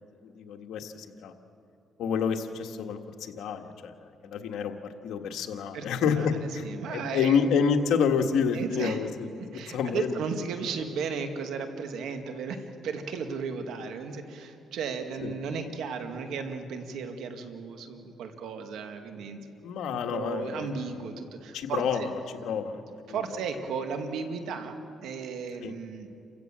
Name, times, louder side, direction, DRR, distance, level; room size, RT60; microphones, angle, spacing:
voice 1, 0.2-1.3 2.0-3.9 4.2-4.7 5.0-10.2 15.2-15.3 19.6-21.2 21.5-22.0 22.4-22.8 25.6-25.7, left 6 dB, 80° left, 5 dB, 1.6 m, -28 dB
voice 2, 5.7-7.4 8.5-9.0 9.4-19.4 19.9-22.1 23.1-24.7 25.0-26.1, right 5 dB, 80° right, 6 dB, 2.1 m, -35 dB
29.0 x 16.0 x 7.5 m, 2.6 s
cardioid pair, 90°, 0 cm